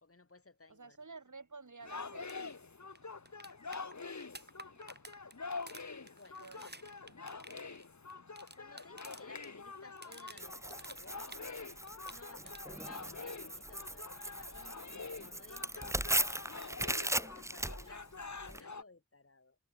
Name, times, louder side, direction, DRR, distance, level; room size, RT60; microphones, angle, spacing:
voice 1, 0.0-1.0 6.1-6.7 8.6-11.7 12.1-14.9 15.1-19.6, left 3 dB, 50° left, 2.7 m, -58 dB
voice 2, 0.7-2.3 6.4-6.7 7.1-7.2, right 4 dB, 80° right, 5.5 m, -51 dB
sound 1, 1.8-18.8, left 4 dB, 70° left, 2.4 m, -46 dB
sound 2, 2.2-2.4 2.6-2.7 3.0-9.5 9.8-11.6 11.9-12.8 14.9-15.0, right 2 dB, 35° right, 4.3 m, -53 dB
Tearing, 10.4-18.6, right 1 dB, 10° right, 0.7 m, -38 dB
wide cardioid pair, 70°, 30 cm